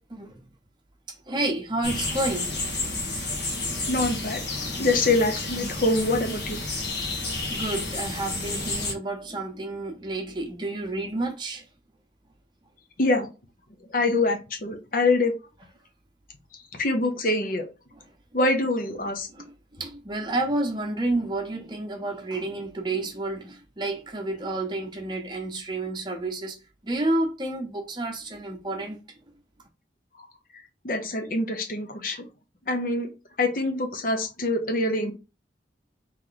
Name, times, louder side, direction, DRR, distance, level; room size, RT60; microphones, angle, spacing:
voice 1, 0.1-0.4 1.1-2.5 2.9-3.0 7.0-7.1 7.5-11.6 19.3-26.6 26.8-29.0, right 2 dB, 25° right, 0.9 m, -30 dB
sound 1, 1.8-8.9, left 2 dB, 75° left, 1.4 m, -31 dB
voice 2, 3.9-4.4 4.8-6.6 13.0-13.3 13.9-15.3 16.7-17.7 18.3-19.3 30.8-32.2 32.7-33.1 33.4-35.1, left 2 dB, 50° left, 0.8 m, -24 dB
3.3 x 3.0 x 3.9 m
head